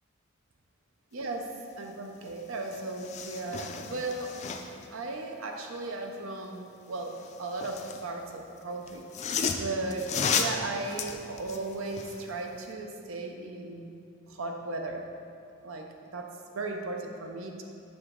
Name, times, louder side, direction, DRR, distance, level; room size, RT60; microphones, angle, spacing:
voice 1, 1.1-4.4 4.9-9.3 9.6-13.9 14.3-15.1 15.6-15.9 16.1-17.6, right 3 dB, 80° right, 3 dB, 0.6 m, -36 dB
sound 1, 2.2-2.3 2.6-4.9 7.0-8.1 8.9-12.2 12.6-12.7, left 6 dB, 35° left, 0.3 m, -33 dB
6.0 x 5.0 x 3.7 m, 2.6 s
head